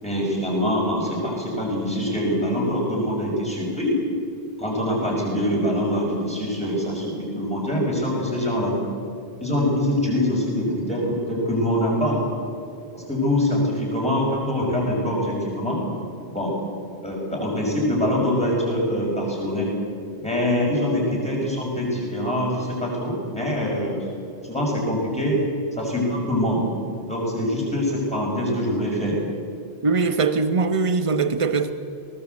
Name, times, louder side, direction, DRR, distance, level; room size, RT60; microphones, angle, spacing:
voice 1, 0.0-4.0 4.6-8.8 9.4-12.3 12.9-15.8 16.3-16.5 17.0-19.7 20.2-24.0 24.5-25.4 25.8-26.6 27.1-29.2, left 1 dB, 5° left, 6.2 m, -24 dB
voice 2, 29.8-31.7, right 4 dB, 30° right, 1.0 m, -21 dB
20.5 x 18.0 x 8.3 m
omnidirectional pair, 1.1 m